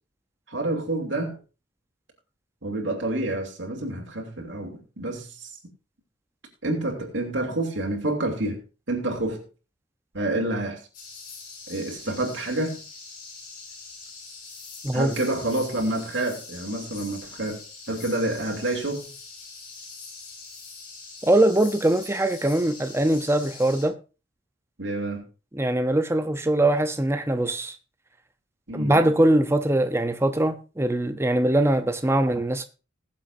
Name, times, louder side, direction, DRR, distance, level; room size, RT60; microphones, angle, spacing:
voice 1, 0.5-1.4 2.6-5.5 6.6-8.6 8.9-9.5 10.1-10.8 11.7-12.8 14.9-19.1 24.8-25.3 28.7-29.0, right 2 dB, 70° right, 2.9 m, -28 dB
sound 1, 10.9-23.9, left 4 dB, 50° left, 4.2 m, -43 dB
voice 2, 21.2-23.9 25.5-27.7 28.7-32.6, right 1 dB, 15° right, 0.7 m, -22 dB
20.5 x 7.5 x 2.7 m
head